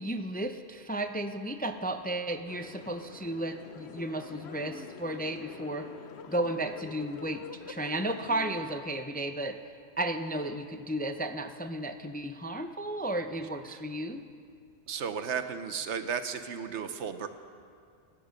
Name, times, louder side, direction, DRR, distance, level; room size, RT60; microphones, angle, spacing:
voice 1, 0.0-5.9 6.3-9.6 10.0-14.2, right 1 dB, 10° left, 7 dB, 0.4 m, -34 dB
sound 1, 2.5-8.7, left 6 dB, 70° left, 1.1 m, -46 dB
voice 2, 14.9-17.3, right 7 dB, 85° right, 9 dB, 1.2 m, -34 dB
26.0 x 10.5 x 5.2 m, 2.3 s
omnidirectional pair, 1.1 m